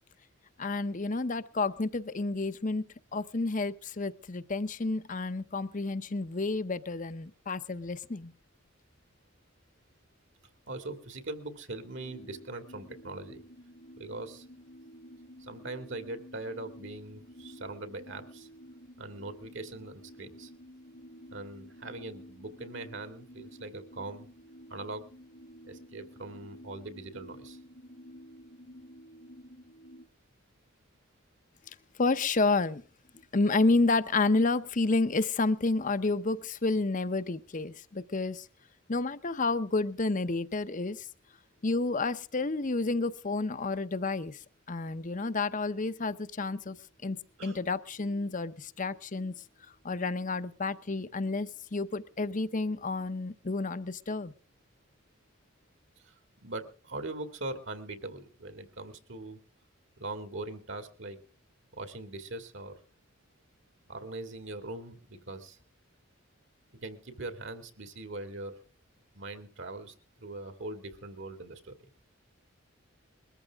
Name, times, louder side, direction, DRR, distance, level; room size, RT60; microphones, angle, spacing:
voice 1, 0.6-2.9 3.1-8.3 32.0-32.8 33.3-38.5 38.9-41.1 41.6-44.4 44.7-46.8 47.0-49.3 49.8-54.3, left 3 dB, 40° left, 0.8 m, -30 dB
voice 2, 10.7-13.4 14.0-14.5 15.4-18.5 19.0-20.5 21.3-24.3 24.7-25.1 25.7-27.6 47.4-47.6 56.0-59.4 60.0-61.2 61.7-62.8 63.9-65.6 66.8-68.5 69.1-71.8, right 2 dB, 60° right, 2.1 m, -41 dB
sound 1, 11.9-30.1, equal, 60° left, 1.7 m, -51 dB
21.5 x 14.0 x 3.5 m
head